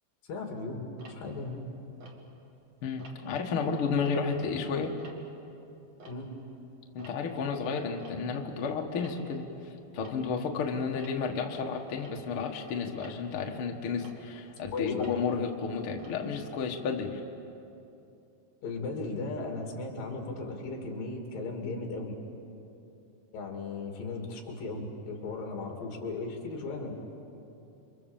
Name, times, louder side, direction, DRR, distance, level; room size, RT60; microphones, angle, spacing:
voice 1, 0.3-1.6 6.0-6.3 14.7-15.1 18.6-22.1 23.3-26.9, left 3 dB, 55° left, 2 dB, 4.2 m, -36 dB
Tick-tock, 1.0-2.6 3.0-3.4 3.8-6.6 6.8-17.0, right 1 dB, 45° right, 2.7 m, -54 dB
voice 2, 2.8-5.0 6.9-17.2, left 5 dB, 80° left, 2 dB, 1.2 m, -32 dB
28.0 x 25.5 x 7.3 m, 2.8 s
omnidirectional pair, 5.2 m